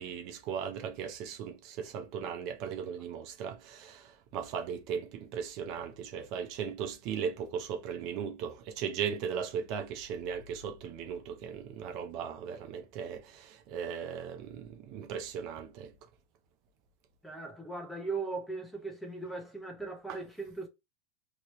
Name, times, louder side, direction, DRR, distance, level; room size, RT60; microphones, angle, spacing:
voice 1, 0.0-15.9 20.1-20.2, right 7 dB, 45° right, 0.6 m, -37 dB
voice 2, 17.2-20.7, right 3 dB, ahead, 0.8 m, -38 dB
3.0 x 2.9 x 3.0 m
supercardioid pair, 150°, 0 cm